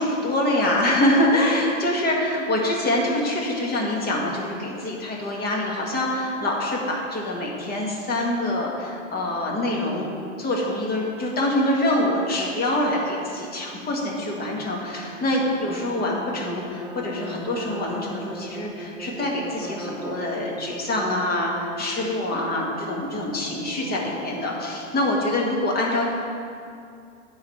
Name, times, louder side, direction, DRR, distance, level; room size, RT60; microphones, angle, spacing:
voice 1, 0.0-10.1 10.4-26.1, left 1 dB, 25° left, -2 dB, 1.9 m, -25 dB
sound 1, 15.1-24.7, right 1 dB, 5° right, 0.5 m, -39 dB
10.0 x 4.0 x 7.1 m, 2.4 s
hypercardioid pair, 120°, 39 cm